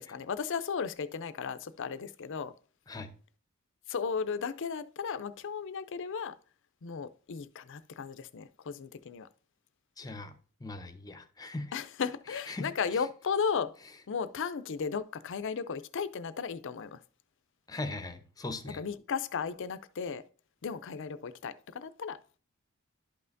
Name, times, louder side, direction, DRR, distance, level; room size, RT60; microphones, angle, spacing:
voice 1, 0.0-2.5 3.9-6.4 6.8-9.3 11.7-13.8 14.1-17.0 18.7-20.2 20.6-22.2, left 6 dB, 60° left, 0.5 m, -35 dB
voice 2, 10.0-10.3 10.6-11.7 12.3-13.0 17.7-18.8, left 2 dB, 20° left, 0.7 m, -40 dB
11.5 x 5.6 x 2.6 m
head